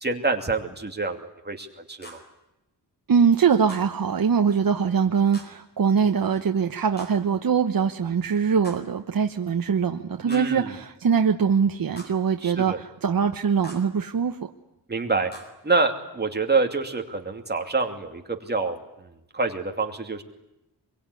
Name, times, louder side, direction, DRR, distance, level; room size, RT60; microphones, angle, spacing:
voice 1, 0.0-2.2 10.2-10.7 12.4-12.8 14.9-15.3 15.6-19.1 19.3-20.2, right 3 dB, 25° right, 4 dB, 2.7 m, -26 dB
sound 1, 2.0-2.4 3.7-4.0 5.3-5.7 7.0-7.4 8.6-9.0 10.3-10.7 12.0-12.3 13.6-14.0 15.3-15.5, equal, 25° left, 4.4 m, -45 dB
voice 2, 3.1-14.5, right 6 dB, 55° right, 5 dB, 1.1 m, -22 dB
26.0 x 23.0 x 9.8 m, 0.90 s
wide cardioid pair, 170°, 40 cm